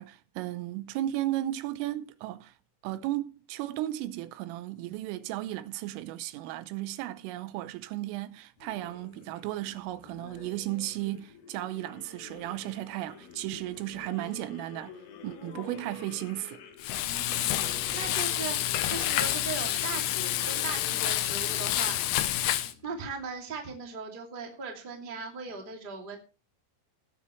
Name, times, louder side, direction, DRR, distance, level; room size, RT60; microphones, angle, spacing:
voice 1, 0.0-2.5 2.8-14.9 15.2-16.6, right 14 dB, 90° right, 3.4 m, -35 dB
sound 1, 8.6-23.5, left 6 dB, 65° left, 2.9 m, -48 dB
Frying (food), 16.8-22.7, left 13 dB, 90° left, 2.3 m, -29 dB
voice 2, 17.0-22.0 22.8-26.2, right 4 dB, 20° right, 1.3 m, -39 dB
19.5 x 8.2 x 3.2 m
omnidirectional pair, 5.7 m